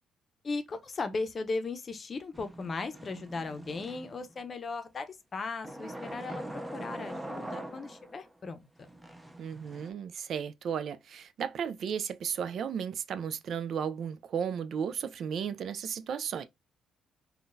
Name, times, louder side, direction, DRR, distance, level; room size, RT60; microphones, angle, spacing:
voice 1, 0.4-6.4 6.7-8.9, left 3 dB, 40° left, 0.6 m, -37 dB
sound 1, 2.3-4.4 5.6-8.3 8.8-9.9, right 1 dB, 10° right, 0.5 m, -43 dB
voice 2, 9.4-16.4, right 7 dB, 65° right, 0.4 m, -34 dB
3.7 x 2.3 x 2.5 m
cardioid pair, 90°, 0 cm